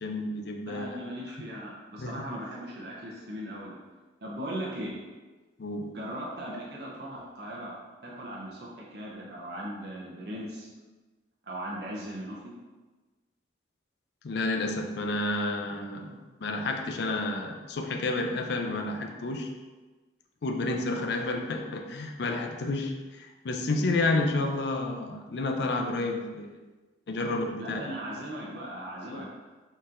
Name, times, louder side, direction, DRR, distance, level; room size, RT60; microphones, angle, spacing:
voice 1, 0.0-1.0 2.0-2.3 5.6-5.9 14.2-19.5 20.4-26.5 27.1-27.9 29.1-29.3, left 2 dB, 65° left, 3 dB, 0.4 m, -30 dB
voice 2, 0.6-3.8 4.2-5.0 5.9-7.7 8.0-10.7 11.4-12.5 27.6-29.3, equal, 55° right, -4 dB, 0.7 m, -38 dB
4.1 x 4.0 x 2.5 m, 1.3 s
head